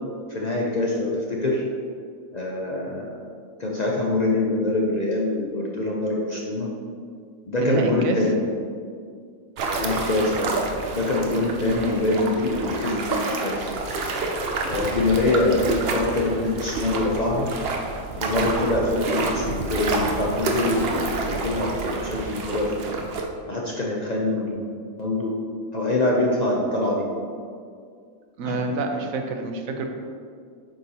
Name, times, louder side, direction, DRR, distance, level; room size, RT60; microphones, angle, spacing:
voice 1, 0.3-1.6 2.3-3.2 3.6-6.7 7.5-8.4 9.7-10.6 10.9-13.7 14.7-17.5 18.2-22.9 23.5-24.6 25.0-25.4 25.7-27.1 28.4-28.6, left 2 dB, 45° left, -3 dB, 0.6 m, -24 dB
voice 2, 7.6-8.2 28.4-29.9, right 3 dB, 85° right, 4 dB, 1.1 m, -27 dB
sound 1, 9.6-23.2, right 3 dB, 55° right, 0.8 m, -28 dB
7.6 x 4.8 x 2.8 m, 2.2 s
omnidirectional pair, 1.4 m